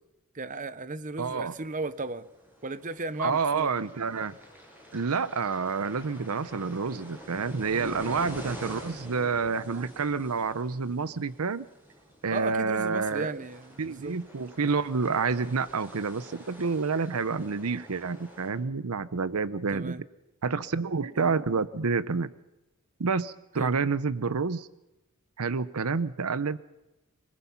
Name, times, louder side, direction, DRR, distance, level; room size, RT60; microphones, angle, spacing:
voice 1, 0.3-2.3 2.6-3.7 7.7-8.2 12.3-14.2 19.7-20.0 21.2-21.3 23.6-23.7, right 3 dB, 35° right, 13 dB, 0.8 m, -35 dB
voice 2, 1.2-1.5 3.2-4.3 4.9-11.7 12.2-13.3 13.8-20.0 20.4-22.3 23.0-24.7 25.4-26.6, right 5 dB, 90° right, 15 dB, 0.8 m, -28 dB
sound 1, 1.5-18.5, equal, 10° right, 7.2 m, -47 dB
25.5 x 20.5 x 5.7 m, 0.97 s
head